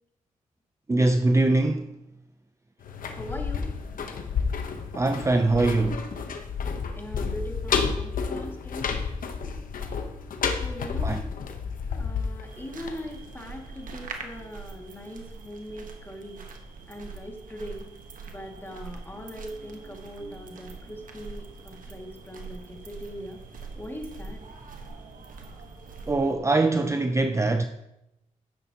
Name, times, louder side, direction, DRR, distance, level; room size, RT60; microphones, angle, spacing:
voice 1, 0.9-2.0 4.9-6.1 11.0-11.2 26.1-27.6, right 2 dB, 20° right, 0.6 m, -23 dB
sound 1, 2.8-13.6 13.9-14.0, left 5 dB, 75° left, 1.0 m, -31 dB
voice 2, 3.1-3.7 7.0-8.9 10.6-11.2 11.9-16.4 16.9-17.9 18.3-23.4 23.8-24.4, equal, 15° left, 2.2 m, -40 dB
sound 2, 12.5-26.4, right 4 dB, 70° right, 1.3 m, -43 dB
11.5 x 9.7 x 3.0 m
cardioid pair, 65°, 14 cm